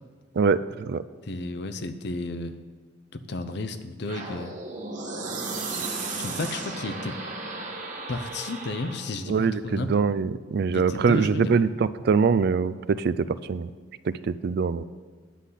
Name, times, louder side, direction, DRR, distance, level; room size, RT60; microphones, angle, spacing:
voice 1, 1.2-2.5 3.1-4.5 6.2-7.2 8.1-9.9 10.7-11.5, left 2 dB, 65° left, 9 dB, 0.7 m, -32 dB
sound 1, 4.1-9.1, right 3 dB, 45° right, 1.5 m, -34 dB
voice 2, 9.3-13.2 13.5-13.7 14.0-14.8, right 5 dB, 60° right, 14 dB, 0.4 m, -23 dB
10.0 x 8.3 x 5.6 m, 1.5 s
head